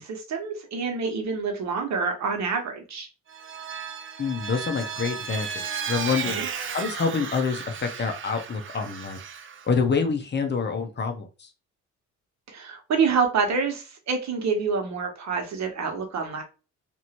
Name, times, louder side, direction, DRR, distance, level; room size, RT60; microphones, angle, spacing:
voice 1, 0.0-3.1 6.4-6.5 12.5-16.4, right 5 dB, 65° right, 3 dB, 1.1 m, -27 dB
Vehicle, 3.3-9.7, right 7 dB, 40° right, 0.5 m, -34 dB
voice 2, 4.2-6.4 6.7-9.2 9.7-11.5, left 5 dB, 35° left, 5 dB, 0.7 m, -27 dB
2.9 x 2.6 x 2.9 m, 0.32 s
cardioid pair, 90°, 30 cm